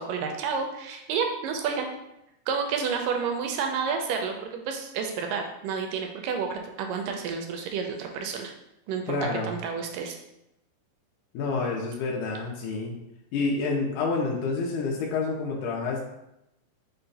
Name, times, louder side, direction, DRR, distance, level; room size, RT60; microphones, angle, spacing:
voice 1, 0.0-1.9 2.5-8.5 8.9-9.2 9.4-10.2, right 6 dB, 80° right, 4 dB, 2.0 m, -30 dB
voice 2, 9.1-9.5 11.3-12.9 13.3-16.0, left 3 dB, 80° left, -2 dB, 2.0 m, -28 dB
5.6 x 2.2 x 3.9 m, 0.85 s
omnidirectional pair, 4.0 m